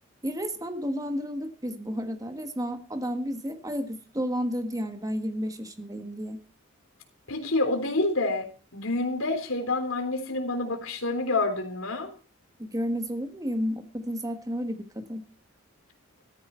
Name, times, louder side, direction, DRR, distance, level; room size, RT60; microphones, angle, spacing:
voice 1, 0.2-6.4 12.7-15.2, equal, 15° right, 7 dB, 1.5 m, -32 dB
voice 2, 7.3-12.1, left 2 dB, 75° left, 6 dB, 3.4 m, -28 dB
14.5 x 13.5 x 4.5 m, 0.38 s
head